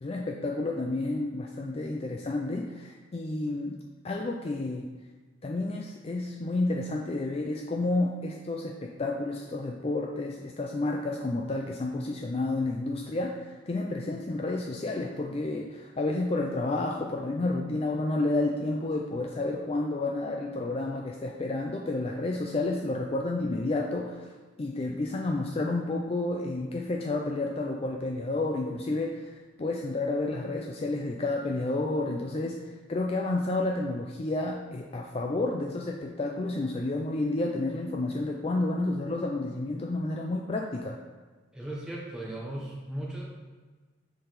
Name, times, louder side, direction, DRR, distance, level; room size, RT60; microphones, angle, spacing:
voice 1, 0.0-3.8 4.0-4.9 5.4-24.3 24.6-41.0, left 2 dB, 30° left, 0 dB, 0.4 m, -30 dB
voice 2, 41.5-43.2, right 1 dB, 5° right, -4 dB, 1.1 m, -37 dB
6.9 x 4.0 x 5.0 m, 1.4 s
head